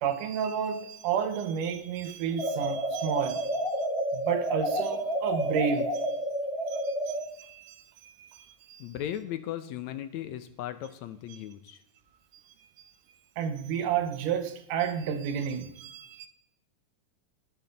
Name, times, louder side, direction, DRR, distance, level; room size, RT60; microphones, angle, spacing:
voice 1, 0.0-3.8 4.1-6.2 6.7-8.8 11.3-11.4 13.4-16.3, right 7 dB, 85° right, 2.7 m, -31 dB
sound 1, 2.4-7.3, right 1 dB, 25° left, 0.7 m, -30 dB
voice 2, 8.8-11.8, left 11 dB, 75° left, 1.9 m, -37 dB
19.0 x 7.8 x 4.0 m
omnidirectional pair, 3.6 m